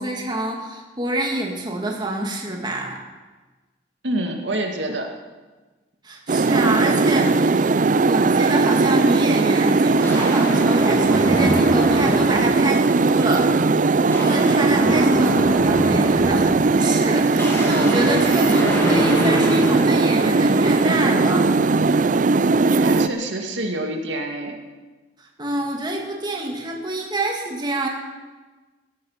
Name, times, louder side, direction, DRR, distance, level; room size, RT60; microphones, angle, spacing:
voice 1, 0.0-3.0 6.0-7.7 7.9-13.5 14.2-21.5 25.2-27.9, right 1 dB, 25° right, 0 dB, 2.2 m, -26 dB
voice 2, 4.0-5.1 14.8-15.5 22.8-24.6, right 1 dB, 75° right, 2 dB, 2.2 m, -26 dB
sound 1, 6.3-23.1, right 3 dB, 45° right, 0.5 m, -18 dB
sound 2, 9.2-9.3 10.0-12.9 13.3-13.6 13.9-21.0, equal, 15° left, 2.9 m, -27 dB
17.0 x 14.5 x 5.8 m, 1.3 s
head